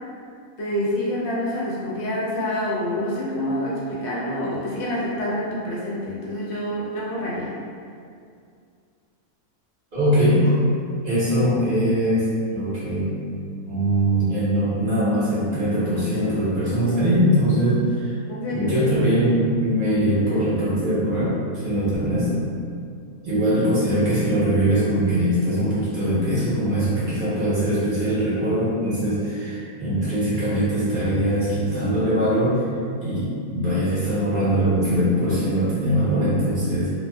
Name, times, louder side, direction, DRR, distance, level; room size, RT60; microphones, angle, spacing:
voice 1, 0.6-7.5 18.3-18.7 29.8-30.0, left 1 dB, 65° left, -6 dB, 0.7 m, -27 dB
voice 2, 9.9-10.4 11.0-13.1 13.6-18.1 18.5-22.4 23.2-32.6 33.0-36.9, right 1 dB, 40° right, -11 dB, 0.9 m, -22 dB
2.5 x 2.2 x 2.2 m, 2.3 s
omnidirectional pair, 1.5 m